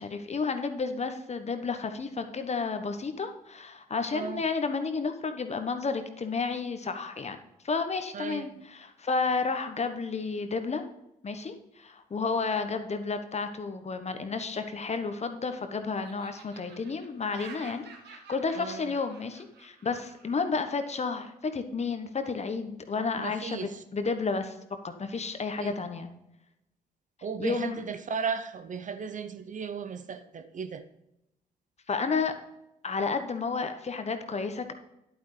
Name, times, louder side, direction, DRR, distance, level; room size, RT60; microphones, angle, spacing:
voice 1, 0.0-7.4 7.6-10.8 11.2-24.6 24.8-26.1 27.4-27.8 31.9-32.3 32.8-34.7, left 4 dB, 35° left, 8 dB, 1.2 m, -31 dB
voice 2, 4.1-4.4 8.1-8.6 18.6-18.9 23.2-23.8 25.6-25.7 27.2-30.8, right 6 dB, 40° right, 10 dB, 0.8 m, -35 dB
Laughter, 14.9-15.6 16.0-20.4, right 4 dB, 60° right, 1.5 m, -50 dB
11.0 x 9.3 x 3.3 m, 0.86 s
figure-of-eight pair, 40°, 20 cm